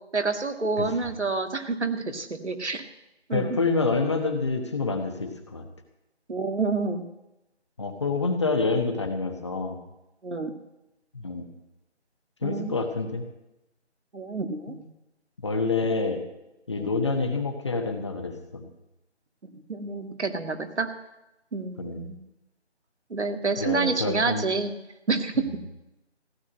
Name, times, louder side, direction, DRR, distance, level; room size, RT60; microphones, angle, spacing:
voice 1, 0.1-2.8 3.3-3.6 6.3-7.0 10.2-10.5 12.4-12.8 14.1-14.8 16.8-16.9 19.7-20.9 21.5-22.2 23.1-24.7 25.1-25.5, right 4 dB, 80° right, 7 dB, 2.0 m, -28 dB
voice 2, 3.3-5.6 7.8-9.8 11.1-11.5 12.4-13.2 14.7-14.8 15.4-16.2 16.7-18.7 21.8-22.0 23.6-24.5 25.4-25.6, left 3 dB, 25° left, 5 dB, 1.1 m, -27 dB
16.0 x 8.0 x 8.9 m, 0.93 s
figure-of-eight pair, 165°, 34 cm